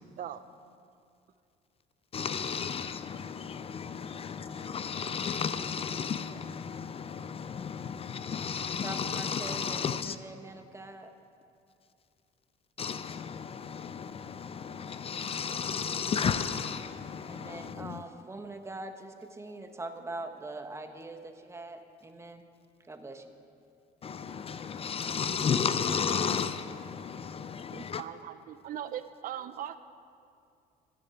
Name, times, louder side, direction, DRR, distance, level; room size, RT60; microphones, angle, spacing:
voice 1, 2.1-10.2 12.8-18.0 24.0-28.0, left 6 dB, 35° left, 0.5 m, -33 dB
voice 2, 8.8-11.1 17.2-22.4 22.9-23.3, right 2 dB, 15° right, 1.0 m, -43 dB
voice 3, 27.7-29.8, right 10 dB, 55° right, 0.5 m, -39 dB
12.5 x 7.0 x 9.7 m
cardioid pair, 110°, 17 cm